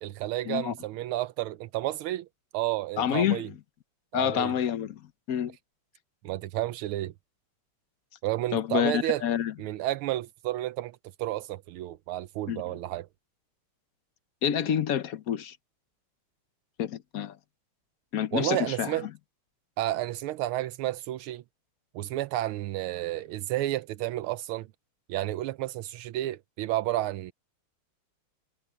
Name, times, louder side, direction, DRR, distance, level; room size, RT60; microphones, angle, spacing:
voice 1, 0.0-2.3 2.5-3.5 4.1-4.5 6.2-7.1 8.2-9.2 9.6-13.1 18.3-19.1 19.8-21.4 21.9-24.7 25.1-27.3, right 15 dB, 80° right, 1.5 m, -31 dB
voice 2, 3.0-3.5 4.1-5.6 8.5-9.5 12.5-12.8 14.4-15.6 16.8-17.4 18.1-19.1, left 9 dB, 60° left, 0.9 m, -28 dB
omnidirectional pair, 2.4 m